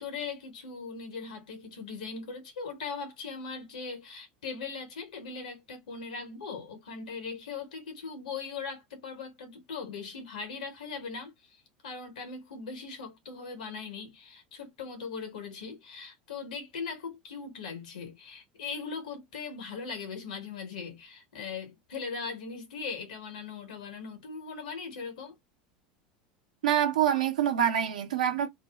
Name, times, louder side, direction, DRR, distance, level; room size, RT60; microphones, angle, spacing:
voice 1, 0.0-11.3 11.8-25.3, left 5 dB, 85° left, 1.0 m, -39 dB
voice 2, 26.6-28.5, right 10 dB, 90° right, 0.7 m, -26 dB
2.6 x 2.2 x 3.4 m
hypercardioid pair, 100°, 4 cm